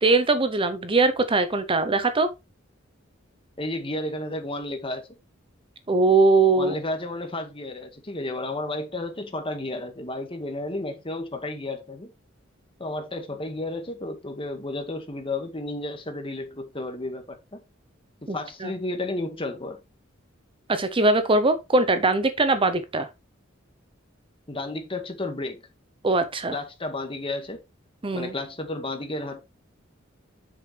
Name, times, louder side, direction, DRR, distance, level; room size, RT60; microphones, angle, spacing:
voice 1, 0.0-2.3 5.9-6.7 18.3-18.4 18.6-18.7 20.7-23.1 26.0-26.6 28.0-28.3, right 3 dB, 25° right, 0.8 m, -21 dB
voice 2, 3.6-5.1 6.6-12.1 12.8-17.6 18.2-19.8 24.5-25.6 26.5-27.6 28.1-29.4, left 2 dB, 30° left, 1.8 m, -32 dB
8.1 x 6.7 x 3.3 m
head